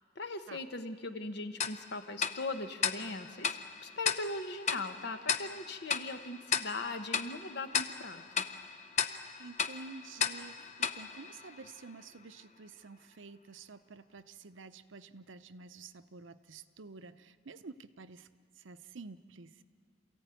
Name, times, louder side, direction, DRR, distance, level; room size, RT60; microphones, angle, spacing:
voice 1, 0.1-8.5, left 2 dB, 60° left, 8 dB, 1.2 m, -40 dB
Tick-tock, 1.6-12.0, left 7 dB, 35° left, 0.7 m, -36 dB
voice 2, 9.4-18.3 18.5-19.6, right 4 dB, 70° right, 12 dB, 0.7 m, -50 dB
28.0 x 15.0 x 9.1 m, 2.3 s
head